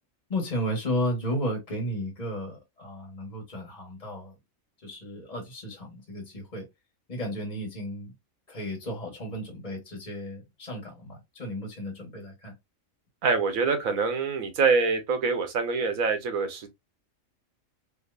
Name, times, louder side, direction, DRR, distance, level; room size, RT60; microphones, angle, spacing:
voice 1, 0.3-4.3 4.8-6.6 7.1-8.1 8.5-12.5, equal, 30° left, 1.2 m, -33 dB
voice 2, 13.2-16.7, right 4 dB, 85° right, 1.3 m, -25 dB
3.5 x 2.6 x 2.4 m
omnidirectional pair, 1.4 m